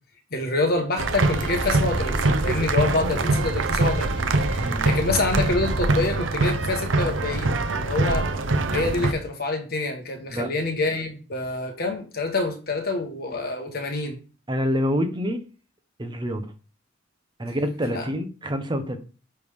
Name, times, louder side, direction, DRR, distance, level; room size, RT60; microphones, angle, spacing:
voice 1, 0.3-8.3 8.7-14.2 17.9-18.1, left 2 dB, 55° left, 1.4 m, -27 dB
sound 1, 1.0-9.1, right 2 dB, 70° right, 0.7 m, -23 dB
voice 2, 4.6-4.9 10.3-10.5 14.5-15.4 16.0-16.5 17.4-19.0, equal, 25° right, 0.8 m, -27 dB
9.2 x 3.4 x 3.6 m
head